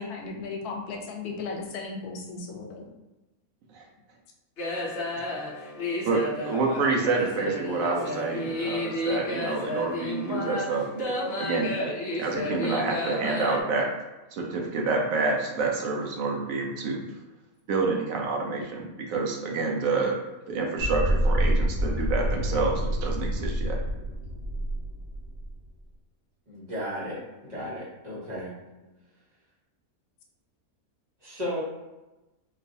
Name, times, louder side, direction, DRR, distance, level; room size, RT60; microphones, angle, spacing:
voice 1, 0.0-2.9, left 4 dB, 90° left, 2 dB, 1.1 m, -36 dB
sound 1, 4.6-13.6, left 1 dB, 55° left, 0.7 m, -32 dB
voice 2, 6.0-10.9 11.4-11.8 12.2-13.9 14.3-17.0 17.7-20.1 20.5-23.8, right 4 dB, 70° right, 0 dB, 1.0 m, -28 dB
sound 2, 20.8-25.6, equal, 90° right, 1.4 m, -27 dB
voice 3, 26.5-27.2 27.5-28.5 31.2-31.6, equal, 35° right, -7 dB, 0.8 m, -34 dB
3.8 x 2.4 x 2.6 m, 1.0 s
omnidirectional pair, 1.6 m